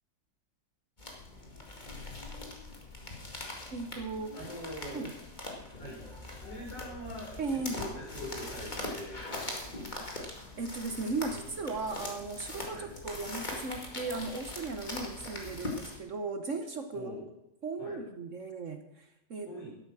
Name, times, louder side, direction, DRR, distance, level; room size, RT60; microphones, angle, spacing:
sound 1, 1.0-16.0, left 2 dB, 25° left, 2.3 m, -42 dB
voice 1, 3.7-4.3 4.9-5.1 7.4-7.8 10.0-10.1 10.6-17.1 17.6-19.7, right 3 dB, 50° right, 7 dB, 1.2 m, -37 dB
voice 2, 4.3-5.0 5.8-6.0 6.3-10.1 12.7-12.9 16.9-17.2 17.8-18.0 19.4-19.7, equal, 80° left, -4 dB, 6.7 m, -43 dB
12.5 x 11.0 x 6.2 m, 0.85 s
omnidirectional pair, 1.9 m